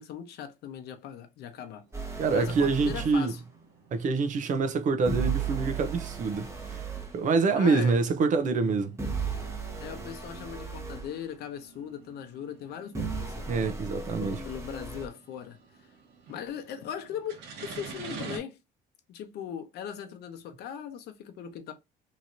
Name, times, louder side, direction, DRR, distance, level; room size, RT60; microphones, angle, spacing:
voice 1, 0.0-1.8 2.3-3.4 7.5-8.0 9.8-13.5 14.1-15.9 16.3-18.6 19.1-21.7, left 8 dB, 75° left, 0.8 m, -39 dB
sound 1, 1.5-18.4, right 5 dB, 85° right, 1.0 m, -50 dB
sound 2, 1.9-3.2 5.1-7.2 9.0-11.1 12.9-15.1, right 5 dB, 15° right, 1.0 m, -35 dB
voice 2, 2.2-3.3 3.9-6.8 7.1-9.0 13.5-14.4, right 4 dB, 50° right, 0.7 m, -26 dB
3.0 x 2.8 x 2.6 m
cardioid pair, 110°, 17 cm